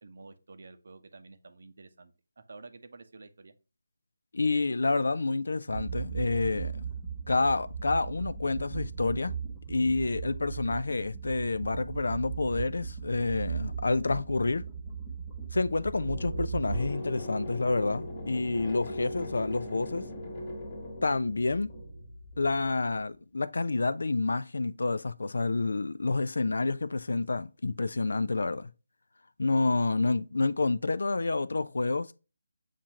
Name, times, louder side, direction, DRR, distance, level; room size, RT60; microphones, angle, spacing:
voice 1, 0.0-3.5, right 3 dB, 60° right, 0.7 m, -50 dB
voice 2, 4.3-6.8 7.3-9.3 9.7-14.6 15.5-20.0 21.0-21.7 22.4-28.7 29.4-32.1, left 3 dB, 70° left, 0.3 m, -28 dB
sound 1, 5.7-16.9, right 6 dB, 5° right, 1.1 m, -37 dB
sound 2, 15.1-23.0, equal, 25° left, 1.1 m, -40 dB
7.2 x 2.5 x 2.8 m
figure-of-eight pair, 160°, 0 cm